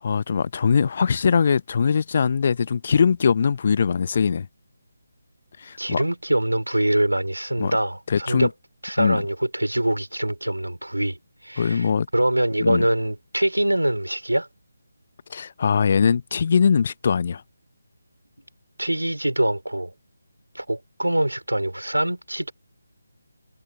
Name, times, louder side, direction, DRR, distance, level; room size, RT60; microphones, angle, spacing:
voice 1, 0.0-4.5 5.6-6.0 7.6-7.8 8.1-8.5 9.0-9.2 11.6-12.1 12.6-12.8 15.3-17.4, left 6 dB, 40° left, 0.9 m, -21 dB
voice 2, 5.8-8.5 8.8-11.2 11.4-11.9 12.1-14.5 18.8-19.9 20.5-22.5, right 1 dB, 80° right, 3.9 m, -24 dB
figure-of-eight pair, 150°, 0 cm